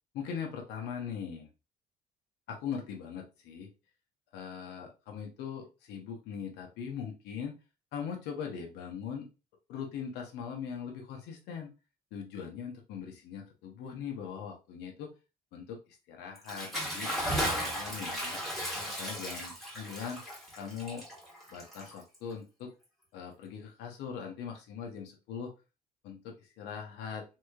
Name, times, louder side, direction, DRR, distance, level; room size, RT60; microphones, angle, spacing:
voice 1, 0.1-1.5 2.5-3.7 4.3-7.6 7.9-9.3 9.7-11.7 12.1-15.1 15.5-17.1 17.4-18.4 18.8-20.2 20.6-21.1 21.5-22.7 23.1-25.5 26.0-27.2, left 7 dB, 85° left, 2 dB, 0.8 m, -40 dB
Bathtub (filling or washing) / Splash splatter, 16.4-22.3, equal, ahead, 1.4 m, -35 dB
3.0 x 2.7 x 2.3 m, 0.30 s
cardioid pair, 110°, 17 cm